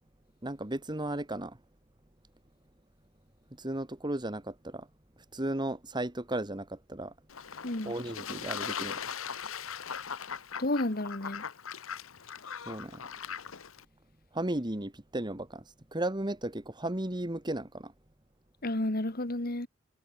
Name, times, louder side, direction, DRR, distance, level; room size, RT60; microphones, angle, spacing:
voice 1, 0.4-1.6 3.5-4.9 5.3-7.1 7.8-9.1 12.7-13.1 14.3-15.6 15.9-17.9, right 1 dB, 20° right, 1.6 m, -35 dB
Fowl / Bird / Water, 7.3-13.8, left 7 dB, 80° left, 1.2 m, -39 dB
voice 2, 7.6-7.9 10.6-11.5 18.6-19.7, left 1 dB, 45° left, 1.9 m, -31 dB
head